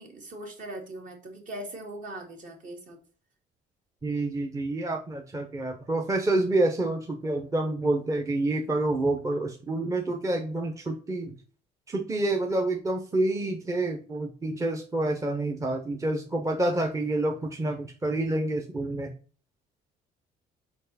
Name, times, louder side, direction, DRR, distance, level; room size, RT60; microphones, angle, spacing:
voice 1, 0.0-3.0, right 1 dB, 50° right, 2 dB, 2.2 m, -40 dB
voice 2, 4.0-11.3 11.9-19.1, right 2 dB, 20° right, 3 dB, 0.9 m, -28 dB
5.2 x 4.6 x 4.1 m, 0.39 s
cardioid pair, 110°, 17 cm